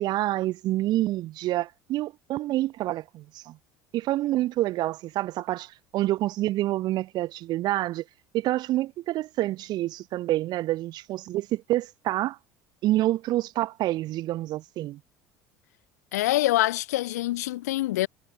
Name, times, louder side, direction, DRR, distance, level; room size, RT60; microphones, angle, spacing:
voice 1, 0.0-3.6 3.9-8.0 8.3-12.4 12.8-15.0, right 15 dB, 55° right, 0.7 m, -27 dB
voice 2, 16.1-18.1, left 16 dB, 85° left, 1.8 m, -25 dB
hypercardioid pair, 85°, 8 cm